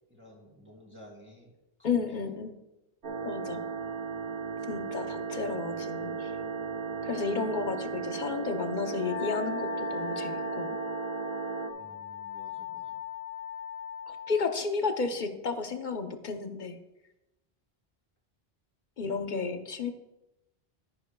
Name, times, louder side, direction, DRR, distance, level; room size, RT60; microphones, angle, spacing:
voice 1, 0.1-1.5 1.8-2.3 11.7-13.0, equal, 10° right, -3 dB, 2.8 m, -53 dB
voice 2, 1.8-2.5 3.2-3.6 4.7-6.3 7.0-10.8 14.1-16.8 19.0-19.9, left 5 dB, 50° left, 6 dB, 0.9 m, -32 dB
sound 1, 3.0-11.7, right 5 dB, 55° right, 1.2 m, -35 dB
Wind instrument woodwind instrument, 9.0-14.5, left 7 dB, 30° left, 2.4 m, -39 dB
13.0 x 9.6 x 2.3 m, 0.96 s
omnidirectional pair, 1.0 m